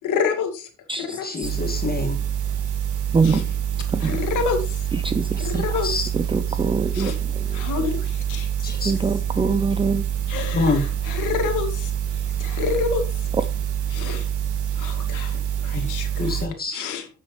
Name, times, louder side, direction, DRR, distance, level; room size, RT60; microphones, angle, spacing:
voice 1, 0.0-0.7 1.0-1.3 3.2-3.5 4.0-4.9 5.4-6.1 6.9-7.2 7.5-9.0 10.3-13.0 13.9-14.3 14.7-16.4 16.7-17.1, left 6 dB, 85° left, 2.2 m, -28 dB
voice 2, 1.2-2.2 5.8-6.0 8.6-8.9 10.5-10.8 15.7-15.8 16.2-16.8, left 4 dB, 30° left, 2.1 m, -25 dB
sound 1, 1.4-16.5, right 9 dB, 75° right, 2.1 m, -26 dB
voice 3, 6.3-7.1 8.9-10.0, right 4 dB, 15° right, 0.6 m, -22 dB
10.5 x 7.2 x 3.2 m
cardioid pair, 90°, 30 cm